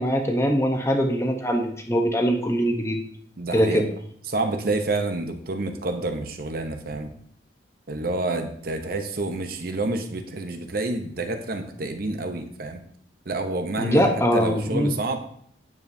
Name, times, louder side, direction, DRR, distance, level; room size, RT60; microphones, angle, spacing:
voice 1, 0.0-3.0 3.5-3.8 13.8-14.9, equal, 15° left, 3 dB, 0.8 m, -22 dB
voice 2, 3.4-3.8 4.3-7.1 7.9-12.8 13.3-15.2, right 2 dB, 55° right, 7 dB, 0.7 m, -28 dB
9.5 x 7.2 x 2.7 m, 0.65 s
head